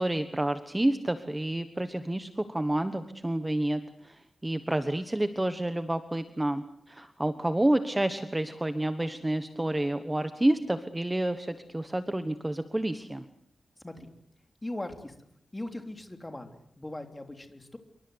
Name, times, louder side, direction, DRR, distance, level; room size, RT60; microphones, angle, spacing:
voice 1, 0.0-13.3, right 1 dB, 10° right, 10 dB, 1.3 m, -29 dB
voice 2, 14.6-15.1 15.5-17.8, left 1 dB, 15° left, 6 dB, 3.3 m, -39 dB
28.0 x 24.0 x 8.1 m, 0.67 s
wide cardioid pair, 155°, 0 cm